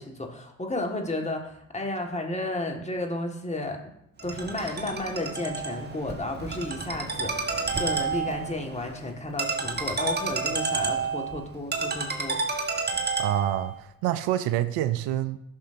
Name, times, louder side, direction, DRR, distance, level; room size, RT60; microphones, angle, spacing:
voice 1, 0.0-3.8 4.2-12.4, left 2 dB, 15° left, 2 dB, 1.7 m, -32 dB
Ringtone, 4.2-13.8, right 4 dB, 20° right, 1.3 m, -30 dB
voice 2, 13.2-15.4, right 12 dB, 60° right, 13 dB, 0.6 m, -27 dB
13.0 x 6.0 x 2.6 m, 0.75 s
figure-of-eight pair, 45°, 45 cm